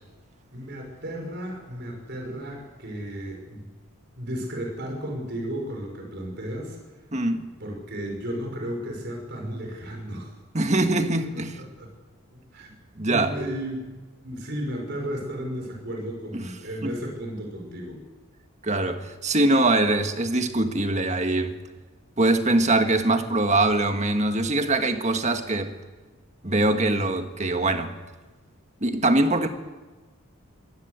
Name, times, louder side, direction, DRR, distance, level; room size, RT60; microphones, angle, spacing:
voice 1, 0.5-3.7 4.2-6.8 7.6-10.3 10.8-10.9 11.3-11.9 12.5-12.7 13.1-13.9 14.2-18.0, equal, 50° right, 2 dB, 5.9 m, -34 dB
voice 2, 7.1-7.4 10.5-11.6 13.0-13.4 16.3-16.5 16.8-16.9 18.6-21.5 22.2-25.7 26.4-27.9 28.8-29.5, right 2 dB, 30° right, 7 dB, 1.6 m, -23 dB
23.5 x 17.5 x 8.2 m, 1.3 s
head